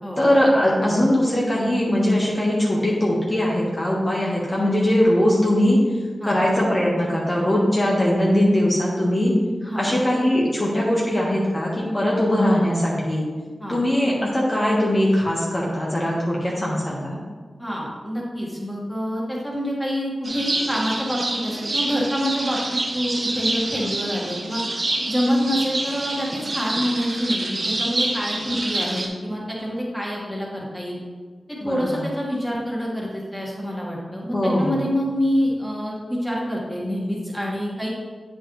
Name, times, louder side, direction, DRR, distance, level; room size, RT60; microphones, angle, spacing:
voice 1, 0.2-5.8 6.2-9.3 9.6-13.3 13.7-17.2 31.6-32.0 34.3-34.8, left 1 dB, 35° left, -5 dB, 1.6 m, -20 dB
voice 2, 17.6-24.6 25.1-31.0 31.6-37.9, equal, ahead, -4 dB, 2.1 m, -26 dB
sound 1, 20.2-29.1, right 2 dB, 55° right, 1.1 m, -27 dB
8.1 x 5.5 x 3.3 m, 1.5 s
cardioid pair, 45°, 0 cm